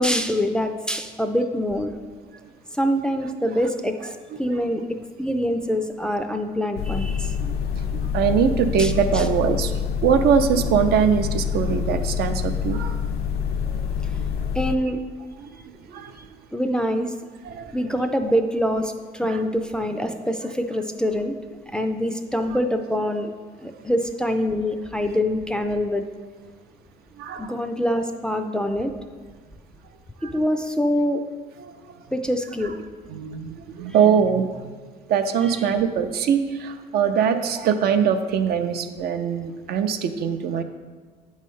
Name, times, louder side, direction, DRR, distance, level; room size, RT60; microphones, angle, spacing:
voice 1, 0.0-2.0 2.7-4.8 5.2-7.4 8.8-9.2 14.0-14.2 14.5-15.0 16.5-17.1 17.7-21.3 21.7-23.3 23.6-26.0 27.4-28.9 30.2-31.2 32.1-32.8 35.4-35.5, equal, 5° left, 5 dB, 0.4 m, -25 dB
sound 1, 6.8-14.8, left 7 dB, 70° left, 0.4 m, -26 dB
voice 2, 7.9-9.7 10.0-13.0 13.7-13.9 15.4-15.6 15.9-16.3 17.4-17.7 19.2-19.4 22.5-22.6 27.2-27.5 30.2-30.3 31.6-32.0 32.6-32.7 33.1-34.8 35.1-40.6, right 7 dB, 70° right, 8 dB, 0.5 m, -22 dB
8.3 x 3.2 x 5.4 m, 1.5 s
cardioid pair, 110°, 17 cm